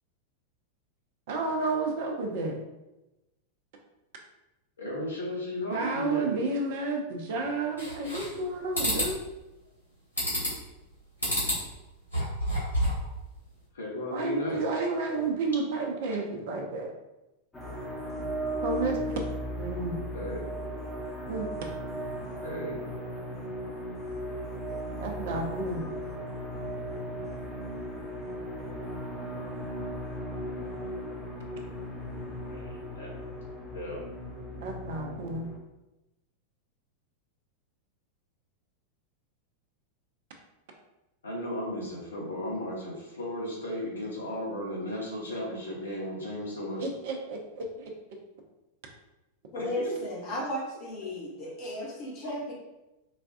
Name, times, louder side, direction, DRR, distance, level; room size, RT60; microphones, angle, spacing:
voice 1, 1.3-2.6 5.7-9.2 14.1-16.9 18.6-19.2 19.6-20.0 21.3-21.5 25.0-25.8 34.6-35.5 46.8-47.9, right 3 dB, 50° right, 2 dB, 0.6 m, -31 dB
voice 2, 4.8-6.4 13.7-14.7 20.1-20.5 22.4-22.8 32.4-33.1 33.7-34.0 41.2-46.9 49.5-49.9, left 1 dB, 70° left, -3 dB, 0.9 m, -35 dB
sound 1, 7.8-8.4 8.7-9.1 10.2-10.7 11.2-11.6 12.0-13.1, equal, 85° left, 1.3 m, -28 dB
sound 2, 17.5-35.6, equal, 10° left, 0.8 m, -37 dB
voice 3, 49.5-52.5, equal, 40° left, -3 dB, 1.0 m, -34 dB
4.1 x 2.3 x 2.4 m, 0.99 s
figure-of-eight pair, 90°, 0 cm